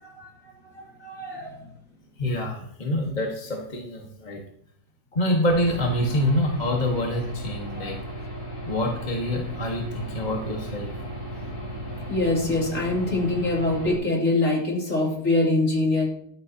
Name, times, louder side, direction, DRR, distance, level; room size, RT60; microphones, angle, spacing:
voice 1, 0.7-1.6 7.7-8.0 12.1-16.1, left 2 dB, 45° left, -3 dB, 3.3 m, -24 dB
voice 2, 2.2-4.4 5.1-8.0 8.6-10.9, left 1 dB, 25° left, -1 dB, 1.5 m, -26 dB
Aircraft / Engine, 5.5-14.0, right 1 dB, 85° left, 6.8 m, -35 dB
14.0 x 12.0 x 2.9 m, 0.66 s
omnidirectional pair, 2.0 m